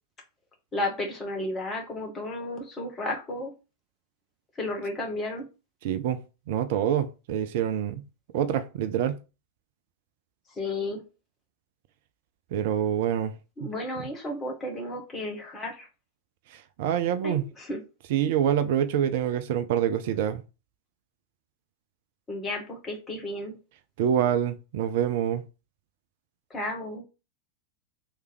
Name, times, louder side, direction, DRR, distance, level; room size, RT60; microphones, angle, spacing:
voice 1, 0.7-3.5 4.5-5.4 10.5-11.0 13.6-15.9 17.2-17.8 22.3-23.6 26.5-27.0, left 1 dB, 20° left, 1.4 m, -33 dB
voice 2, 5.8-6.2 6.5-8.0 8.3-9.2 12.5-13.3 13.6-13.7 16.8-17.4 18.1-20.4 24.0-25.4, right 9 dB, 50° right, 0.4 m, -26 dB
3.2 x 3.2 x 4.8 m
figure-of-eight pair, 90°, 0 cm